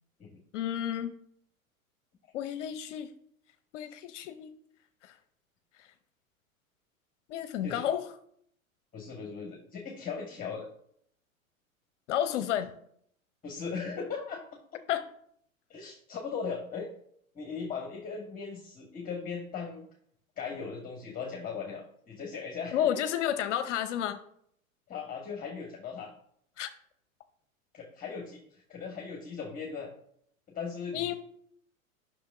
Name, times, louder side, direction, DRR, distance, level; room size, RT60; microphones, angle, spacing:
voice 1, 0.5-1.2 2.3-3.1 3.7-4.5 5.0-5.2 5.7-5.9 7.3-8.1 12.1-12.7 14.9-15.1 22.7-24.2 26.6-26.7 30.9-31.1, left 10 dB, 60° left, 10 dB, 0.8 m, -31 dB
voice 2, 8.9-10.7 13.4-14.4 15.7-16.9 17.3-19.9 20.4-22.9 24.9-26.1 27.7-29.9 30.5-31.1, left 5 dB, 20° left, 1 dB, 1.4 m, -38 dB
10.0 x 6.1 x 2.6 m, 0.67 s
hypercardioid pair, 100°, 42 cm